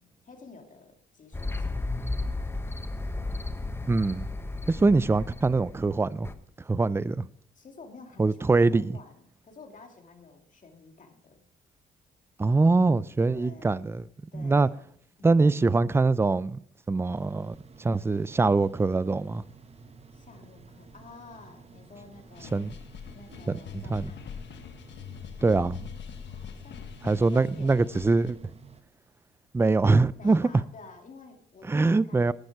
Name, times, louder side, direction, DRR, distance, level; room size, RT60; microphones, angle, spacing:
voice 1, 0.0-2.9 4.4-4.9 7.5-11.4 13.3-14.8 15.2-15.4 20.1-22.7 23.1-24.4 26.3-26.9 27.2-28.1 30.1-32.3, left 4 dB, 40° left, 2.2 m, -51 dB
sound 1, 1.3-6.3, left 2 dB, 10° left, 0.9 m, -34 dB
voice 2, 3.9-4.3 4.8-6.3 6.7-7.3 8.2-9.0 12.4-14.0 14.3-14.7 15.2-16.6 16.9-17.5 17.8-19.4 22.5-22.7 23.5-24.1 25.4-25.9 27.0-28.4 29.5-30.5 31.7-32.3, right 3 dB, 10° right, 0.4 m, -23 dB
sound 2, 17.0-28.8, right 4 dB, 30° right, 0.9 m, -51 dB
sound 3, 22.3-28.3, left 8 dB, 65° left, 1.0 m, -43 dB
10.5 x 10.0 x 4.7 m
cardioid pair, 90°, 20 cm